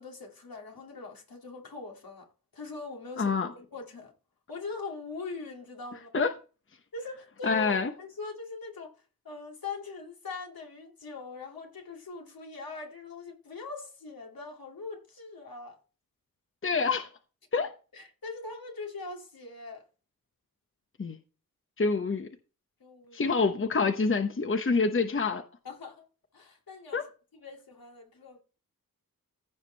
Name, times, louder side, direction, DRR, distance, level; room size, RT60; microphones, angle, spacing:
voice 1, 0.0-4.1 4.5-6.1 6.9-9.0 9.2-15.8 17.6-17.7 17.9-19.8 22.8-23.2 25.6-26.1 26.3-27.1 27.3-28.4, left 4 dB, 75° left, 2.5 m, -42 dB
voice 2, 3.2-3.5 6.1-6.3 7.4-7.9 16.6-17.1 17.5-17.7 21.0-21.2 21.8-22.3 23.1-25.4 26.9-27.0, left 4 dB, 35° left, 0.9 m, -26 dB
15.0 x 5.1 x 3.3 m
cardioid pair, 60°, 35 cm